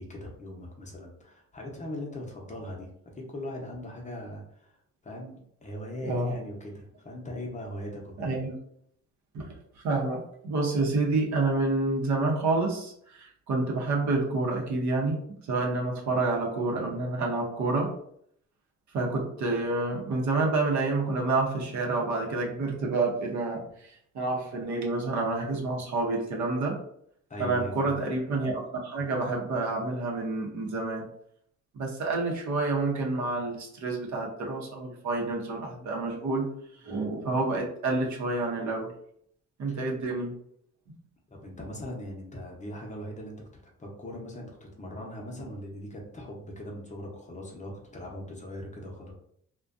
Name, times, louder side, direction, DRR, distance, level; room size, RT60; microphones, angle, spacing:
voice 1, 0.0-4.7 5.0-8.3 27.3-27.9 39.7-39.8 41.3-49.1, left 1 dB, 25° left, -1 dB, 0.6 m, -40 dB
voice 2, 6.0-6.3 8.2-8.5 9.3-9.5 9.8-18.0 18.9-26.8 27.4-31.1 31.7-36.5 36.8-38.9 39.6-40.3, right 3 dB, 65° right, 0 dB, 0.7 m, -28 dB
2.4 x 2.1 x 2.4 m, 0.69 s
cardioid pair, 90°, 30 cm